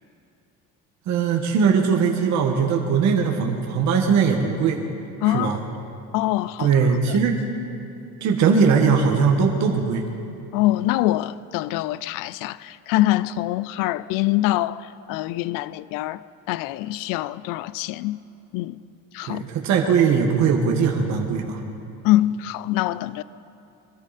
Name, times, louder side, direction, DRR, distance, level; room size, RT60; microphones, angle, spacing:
voice 1, 1.1-4.8 5.2-5.6 6.6-7.4 8.2-10.0 19.2-21.6, right 6 dB, 55° right, 1.5 m, -20 dB
voice 2, 5.2-5.6 6.1-6.7 10.5-16.2 16.5-18.2 18.5-18.8 19.1-19.4 22.0-23.2, left 15 dB, 75° left, 0.5 m, -24 dB
23.0 x 13.5 x 4.2 m
cardioid pair, 135°, 33 cm